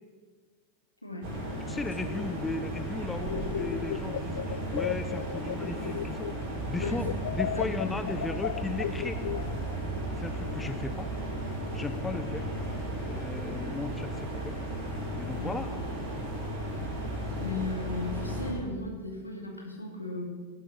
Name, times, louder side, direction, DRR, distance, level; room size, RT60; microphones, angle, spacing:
voice 1, 1.0-1.3 2.1-2.2 6.8-7.1 7.5-7.8 15.3-15.6 17.4-20.2, left 3 dB, 85° left, 0 dB, 2.8 m, -36 dB
sound 1, 1.2-18.5, right 1 dB, 45° right, 5.2 m, -35 dB
voice 2, 1.7-6.3 6.7-7.1 7.3-9.2 10.2-11.1 11.7-12.5 13.0-14.6 15.2-15.8, left 3 dB, 10° left, 9 dB, 0.7 m, -36 dB
sound 2, 3.2-6.5 6.8-9.8, left 10 dB, 60° left, 0.3 m, -35 dB
18.0 x 8.3 x 6.1 m, 1.5 s
figure-of-eight pair, 90°, 0 cm